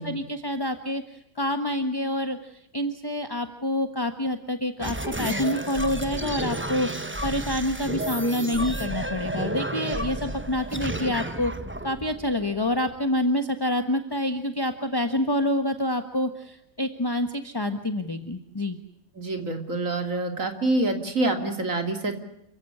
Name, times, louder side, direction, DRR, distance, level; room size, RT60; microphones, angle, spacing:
voice 1, 0.0-11.5 11.8-18.8, left 1 dB, 15° left, 8 dB, 1.2 m, -27 dB
sound 1, 4.8-13.0, right 1 dB, 10° right, 1.0 m, -31 dB
voice 2, 19.2-22.2, right 2 dB, 60° right, 5 dB, 3.5 m, -26 dB
29.0 x 16.0 x 9.8 m, 0.79 s
omnidirectional pair, 1.5 m